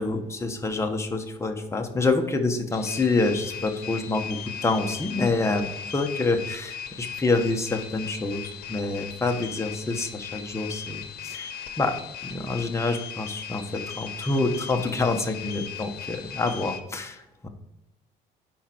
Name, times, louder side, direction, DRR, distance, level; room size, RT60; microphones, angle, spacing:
voice 1, 0.0-17.5, left 3 dB, 15° left, 4 dB, 1.1 m, -27 dB
sound 1, 2.7-16.8, left 8 dB, 65° left, 0.9 m, -38 dB
9.7 x 5.2 x 4.4 m, 0.91 s
cardioid pair, 110°, 17 cm